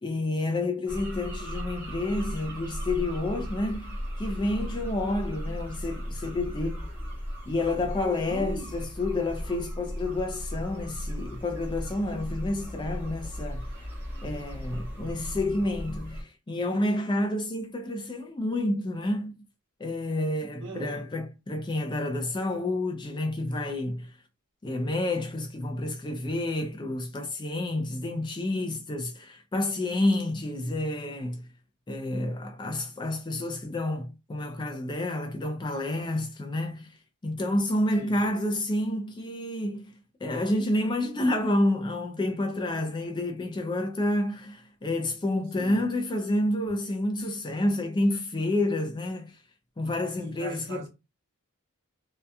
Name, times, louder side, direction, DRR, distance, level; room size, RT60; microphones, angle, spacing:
voice 1, 0.0-6.9 7.5-13.7 14.2-19.4 19.8-24.1 24.6-31.5 31.9-36.9 37.2-39.9 40.2-49.4 49.8-50.9, left 1 dB, 20° left, 0.3 m, -29 dB
sound 1, 0.9-16.2, equal, 10° right, 0.9 m, -36 dB
voice 2, 8.2-8.7 20.6-21.1 38.0-38.2 45.5-45.8 50.2-50.9, right 3 dB, 60° right, 1.0 m, -39 dB
2.6 x 2.2 x 2.2 m
head